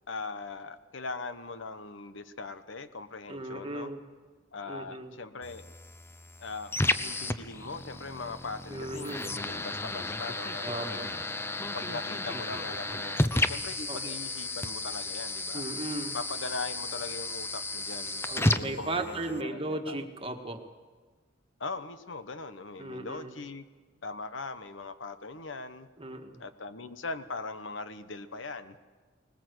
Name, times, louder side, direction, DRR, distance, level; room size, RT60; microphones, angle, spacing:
voice 1, 0.1-3.9 4.5-5.6 6.4-11.0 11.7-15.6 16.1-20.1 21.6-23.6 24.0-25.9 26.4-28.8, left 3 dB, 70° left, 11 dB, 1.0 m, -40 dB
voice 2, 3.3-4.0 4.7-5.1 8.7-9.3 10.6-11.1 13.9-14.2 15.5-16.2 18.3-20.6 22.8-23.3 26.0-26.4, right 2 dB, 30° right, 5 dB, 1.7 m, -36 dB
sound 1, 5.4-19.4, left 2 dB, 15° left, 0.7 m, -33 dB
20.5 x 20.0 x 8.0 m, 1.4 s
head